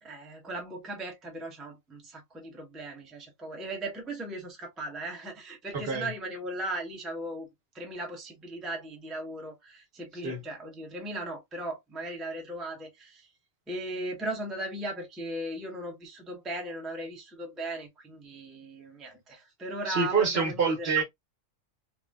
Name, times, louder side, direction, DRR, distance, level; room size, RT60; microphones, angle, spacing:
voice 1, 0.0-7.5 7.7-13.3 13.7-21.0, right 1 dB, ahead, 0.5 m, -37 dB
voice 2, 5.7-6.1 10.2-10.4 19.9-21.0, right 5 dB, 55° right, 1.0 m, -26 dB
3.2 x 2.1 x 2.2 m
omnidirectional pair, 1.4 m